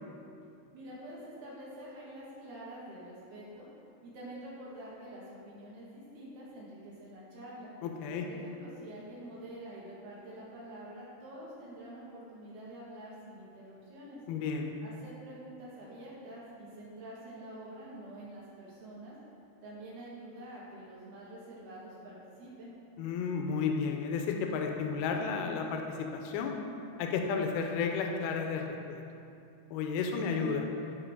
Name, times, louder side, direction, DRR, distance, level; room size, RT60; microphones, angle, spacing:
voice 1, 0.7-3.7 4.0-7.7 8.2-14.2 14.8-19.2 19.6-22.7, right 1 dB, 65° right, -7 dB, 3.5 m, -47 dB
voice 2, 7.8-8.3 14.3-14.7 23.0-26.5 27.0-28.6 28.9-29.0 29.7-30.7, left 5 dB, 80° left, 3 dB, 2.3 m, -32 dB
12.5 x 4.7 x 3.7 m, 2.6 s
omnidirectional pair, 5.1 m